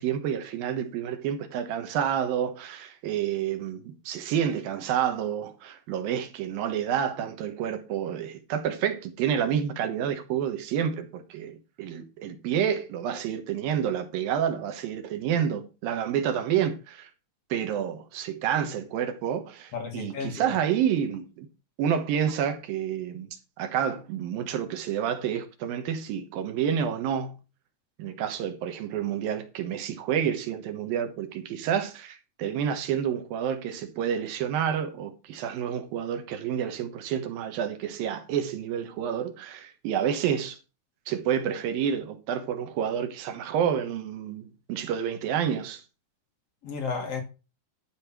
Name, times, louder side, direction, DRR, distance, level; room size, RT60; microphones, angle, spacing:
voice 1, 0.0-17.1 17.5-21.5 21.8-23.3 23.6-27.4 28.0-40.6 41.1-45.8, right 9 dB, 80° right, 3.0 m, -29 dB
voice 2, 19.7-20.6 46.6-47.2, left 5 dB, 50° left, 2.5 m, -33 dB
12.0 x 5.3 x 5.9 m
omnidirectional pair, 4.1 m